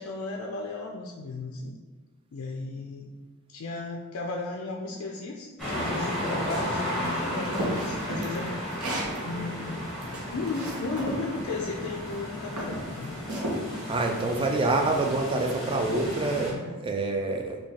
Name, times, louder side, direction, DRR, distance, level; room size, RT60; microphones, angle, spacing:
voice 1, 0.0-1.8 2.3-3.1 3.5-8.6 9.2-9.9 10.3-13.2 16.4-16.8, left 3 dB, 65° left, 0 dB, 0.3 m, -35 dB
sound 1, 5.6-16.5, left 1 dB, ahead, 1.1 m, -34 dB
sound 2, 7.0-9.2 9.7-11.2 12.0-12.2 12.6-13.6, right 1 dB, 85° right, 0.8 m, -33 dB
voice 2, 13.9-17.6, right 2 dB, 25° right, 3 dB, 0.3 m, -27 dB
4.7 x 2.3 x 2.8 m, 1.3 s
head